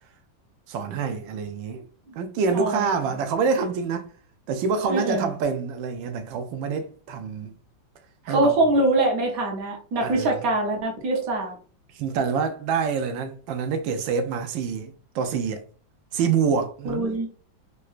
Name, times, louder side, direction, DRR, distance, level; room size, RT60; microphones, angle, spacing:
voice 1, 0.7-1.9 2.2-4.1 4.5-7.5 8.2-8.6 10.0-10.4 11.9-15.6 16.1-17.3, right 5 dB, 90° right, 1.3 m, -26 dB
voice 2, 2.5-2.9 4.9-5.3 8.3-11.6 16.8-17.3, right 2 dB, 55° right, 1.1 m, -23 dB
3.8 x 2.2 x 2.4 m
omnidirectional pair, 2.0 m